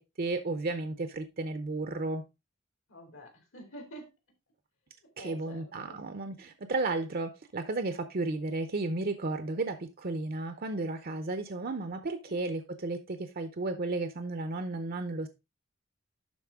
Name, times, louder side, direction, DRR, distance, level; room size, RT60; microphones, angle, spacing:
voice 1, 0.0-2.2 5.2-15.3, right 2 dB, 50° right, 0.7 m, -33 dB
voice 2, 2.9-4.1 5.0-6.3 12.3-12.4, equal, 70° left, 3.0 m, -48 dB
11.5 x 4.3 x 3.6 m
head